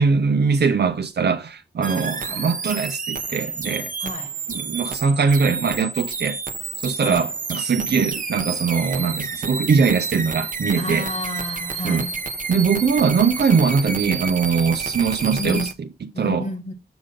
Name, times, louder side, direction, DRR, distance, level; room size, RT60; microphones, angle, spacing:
voice 1, 0.0-3.9 4.5-6.4 6.8-11.1 11.8-12.1 12.5-15.9 16.2-16.5, right 5 dB, 90° right, 0.7 m, -21 dB
sound 1, 1.8-15.7, right 4 dB, 55° right, 0.7 m, -30 dB
voice 2, 10.8-12.1 15.4-15.7 16.1-16.7, left 1 dB, 45° left, 1.6 m, -30 dB
7.0 x 5.2 x 3.8 m
wide cardioid pair, 80°, 17 cm